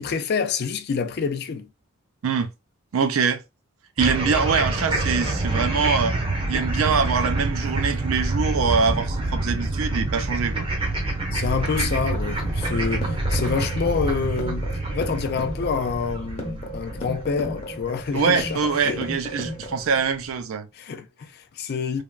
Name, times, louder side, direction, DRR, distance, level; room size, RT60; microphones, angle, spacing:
voice 1, 0.0-1.7 11.3-19.0 20.7-22.0, left 5 dB, 50° left, 0.4 m, -27 dB
voice 2, 2.9-3.4 4.0-6.2 6.5-10.7 18.1-20.7, right 5 dB, 70° right, 0.5 m, -24 dB
sound 1, 4.0-19.3, right 2 dB, 25° right, 0.7 m, -27 dB
sound 2, 12.1-20.1, left 1 dB, 30° left, 0.8 m, -35 dB
3.3 x 2.2 x 2.2 m
head